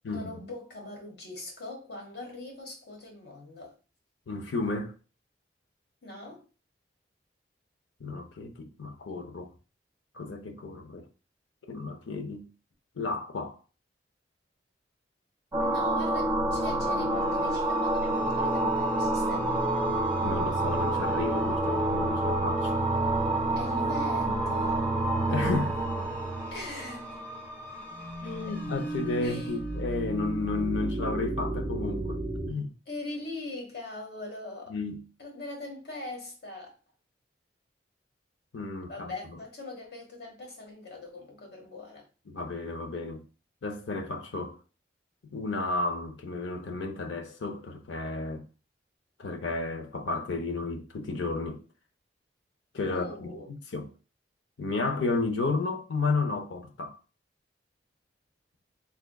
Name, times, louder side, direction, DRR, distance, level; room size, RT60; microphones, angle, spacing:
voice 1, 0.1-3.7 6.0-6.4 15.6-19.5 23.6-24.9 26.5-27.3 29.2-29.5 32.9-34.7 35.2-36.7 38.9-42.1 52.9-53.5, left 2 dB, 60° left, 1.2 m, -41 dB
voice 2, 4.3-4.9 8.0-9.5 10.1-11.1 11.7-12.5 13.0-13.6 20.2-22.8 25.3-25.9 28.2-32.7 34.7-35.0 38.5-38.9 42.3-43.2 43.6-44.6 45.3-48.4 49.2-51.6 52.7-53.9 54.6-56.9, left 3 dB, 85° left, 0.6 m, -32 dB
sound 1, 15.5-27.5 27.9-32.5, right 2 dB, 15° right, 0.4 m, -29 dB
sound 2, 16.2-30.5, left 1 dB, 10° left, 0.9 m, -45 dB
3.6 x 3.4 x 2.3 m
head